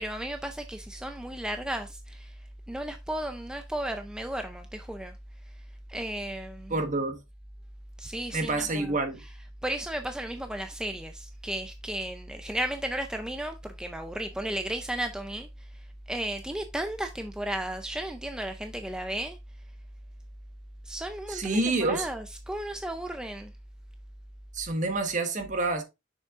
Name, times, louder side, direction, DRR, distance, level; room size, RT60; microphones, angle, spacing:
voice 1, 0.0-2.3 2.7-5.1 5.9-6.7 8.0-8.9 9.6-15.5 16.1-19.4 20.9-23.5, right 1 dB, 5° right, 0.4 m, -34 dB
voice 2, 6.7-7.2 8.3-9.2 21.3-22.1 24.5-25.8, right 2 dB, 45° right, 1.3 m, -28 dB
6.4 x 6.3 x 2.4 m
head